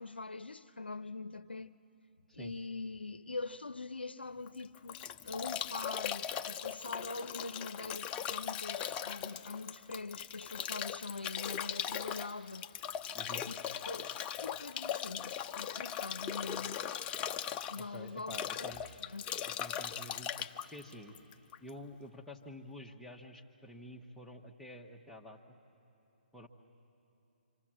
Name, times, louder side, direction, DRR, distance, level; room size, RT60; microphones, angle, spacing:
voice 1, 0.0-1.7 2.3-12.7 13.4-16.8 17.7-18.7 19.0-19.2, left 3 dB, 90° left, 0.5 m, -43 dB
Bathtub (filling or washing) / Drip / Trickle dribble, 4.5-21.7, left 9 dB, 20° left, 0.5 m, -39 dB
voice 2, 13.1-13.5 17.8-18.8 19.4-21.1 21.6-25.6 26.3-26.5, left 1 dB, ahead, 1.3 m, -49 dB
26.5 x 25.5 x 7.6 m
figure-of-eight pair, 135°, 5 cm